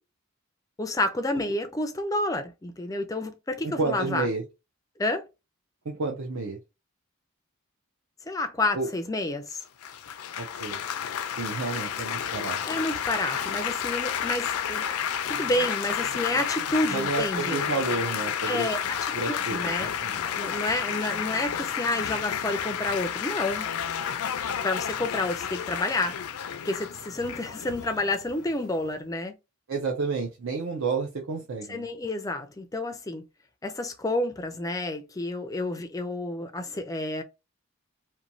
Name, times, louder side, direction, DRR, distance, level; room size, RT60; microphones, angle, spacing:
voice 1, 0.8-4.3 5.0-5.3 8.3-9.6 12.6-14.8 15.3-17.6 18.5-19.9 20.3-23.7 24.6-26.2 26.6-29.3 31.7-33.2 33.6-37.2, left 2 dB, 15° left, 0.3 m, -29 dB
voice 2, 3.6-4.4 5.9-6.6 8.7-8.9 10.4-10.8 11.4-12.6 16.9-18.7 19.1-20.2 29.7-31.8, right 4 dB, 70° right, 0.5 m, -30 dB
Laughter / Applause / Chatter, 9.8-28.9, left 8 dB, 85° left, 0.4 m, -31 dB
3.0 x 2.2 x 2.6 m
head